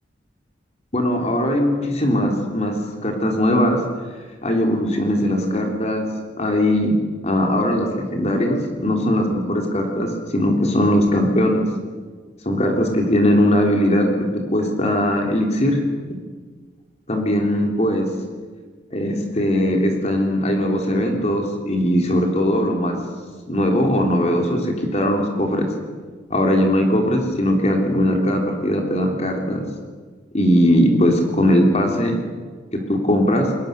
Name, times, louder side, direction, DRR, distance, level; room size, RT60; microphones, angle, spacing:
voice 1, 0.9-2.7 3.0-3.8 4.4-6.0 6.4-6.9 7.2-11.7 12.5-15.8 17.1-18.1 18.9-23.0 23.5-25.7 26.3-29.7 30.3-32.2 32.7-33.5, equal, 35° left, 2 dB, 3.5 m, -19 dB
29.5 x 22.0 x 6.7 m, 1.5 s
head